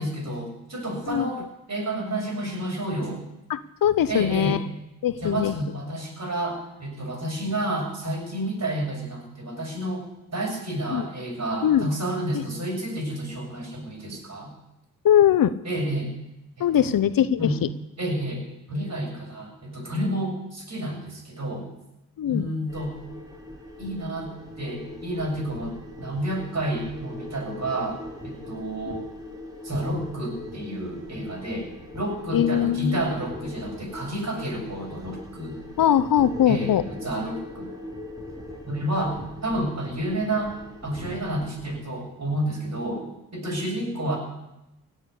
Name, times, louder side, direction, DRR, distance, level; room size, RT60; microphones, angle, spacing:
voice 1, 0.0-3.2 4.1-4.6 5.2-10.0 10.3-14.5 15.6-16.1 16.8-16.9 17.4-17.6 18.0-21.7 22.3-22.9 23.8-24.3 24.6-28.0 28.2-29.1 29.6-35.6 36.5-36.7 37.0-37.7 38.7-40.6 40.8-43.1 43.3-44.2, right 1 dB, 45° right, 0 dB, 7.3 m, -30 dB
voice 2, 3.5-4.6 5.0-5.5 10.9-11.1 11.6-11.9 12.3-12.4 15.0-15.5 16.6-17.7 22.2-22.5 32.3-33.1 35.8-36.8, left 10 dB, 65° left, 15 dB, 0.8 m, -21 dB
sound 1, 22.7-41.8, left 1 dB, 10° right, 5.7 m, -41 dB
17.0 x 8.1 x 8.3 m, 0.91 s
supercardioid pair, 45°, 37 cm